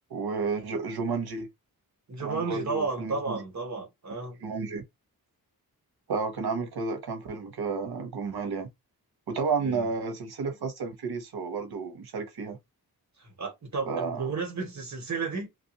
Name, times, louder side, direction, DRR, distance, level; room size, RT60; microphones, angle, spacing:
voice 1, 0.1-1.5 2.2-3.4 4.4-4.8 6.1-8.7 9.3-12.6 13.9-14.3, right 4 dB, 85° right, 1.0 m, -32 dB
voice 2, 2.1-4.4 9.6-9.9 13.2-15.5, right 4 dB, 50° right, 1.5 m, -33 dB
3.0 x 2.6 x 2.8 m
wide cardioid pair, 100°, 37 cm